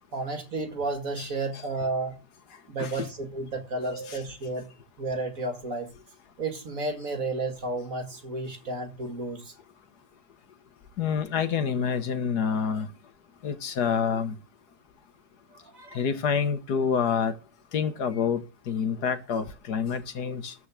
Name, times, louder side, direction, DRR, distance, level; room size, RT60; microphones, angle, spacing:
voice 1, 0.1-2.2 2.7-4.7 5.0-5.9 6.4-9.4 15.7-16.1, right 3 dB, 50° right, 2.4 m, -32 dB
voice 2, 3.8-4.2 11.0-12.9 13.4-14.3 15.9-17.3 17.7-18.4 18.7-20.5, left 6 dB, 65° left, 1.6 m, -27 dB
13.5 x 4.7 x 7.4 m
omnidirectional pair, 1.9 m